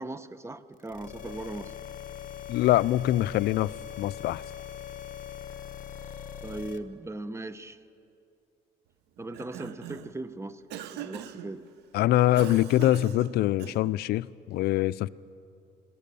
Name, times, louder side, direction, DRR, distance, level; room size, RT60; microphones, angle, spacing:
voice 1, 0.0-1.7 6.4-7.8 9.2-10.6 10.9-11.6, right 2 dB, 15° right, 14 dB, 0.8 m, -38 dB
sound 1, 0.8-6.8, left 9 dB, 50° left, 1.1 m, -41 dB
voice 2, 2.5-3.7 4.0-4.4 11.9-15.1, left 15 dB, 70° left, 18 dB, 0.4 m, -24 dB
Cough, 9.2-10.2 10.7-11.5 12.4-14.0, right 10 dB, 80° right, 0.9 m, -41 dB
22.0 x 17.5 x 6.9 m, 2.5 s
cardioid pair, 110°, 17 cm